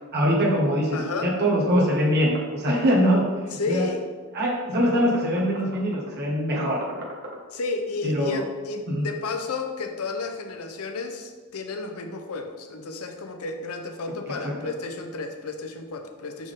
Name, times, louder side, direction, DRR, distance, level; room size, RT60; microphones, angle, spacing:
voice 1, 0.1-3.2 3.7-3.9 4.3-6.8 8.0-8.4 8.9-9.1 14.4-14.5, equal, 50° right, -4 dB, 1.6 m, -23 dB
voice 2, 0.9-1.3 3.5-4.0 7.5-16.5, left 3 dB, 80° left, 5 dB, 0.7 m, -32 dB
6.0 x 6.0 x 3.6 m, 1.4 s
head